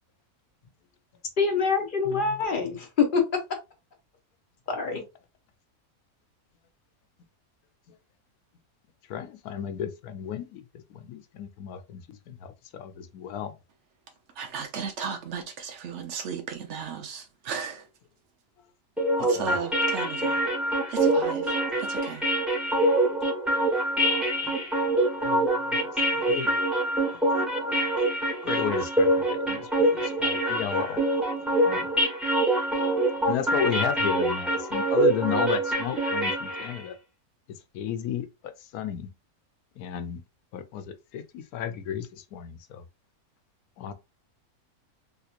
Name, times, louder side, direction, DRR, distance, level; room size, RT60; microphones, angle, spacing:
voice 1, 1.4-3.2 4.7-5.0, left 5 dB, 45° left, 0.8 m, -25 dB
voice 2, 2.0-2.4 9.1-13.5 19.2-19.6 21.7-22.0 24.4-24.6 25.2-26.6 28.4-31.0 31.7-31.9 33.3-37.0 37.5-39.1 39.8-40.2 40.5-42.8 43.8-43.9, left 8 dB, 80° left, 1.1 m, -34 dB
voice 3, 14.4-17.8 19.3-20.3 20.9-22.2, right 6 dB, 55° right, 1.0 m, -35 dB
sound 1, 19.0-36.8, right 1 dB, ahead, 1.1 m, -25 dB
3.6 x 2.8 x 2.4 m
omnidirectional pair, 1.5 m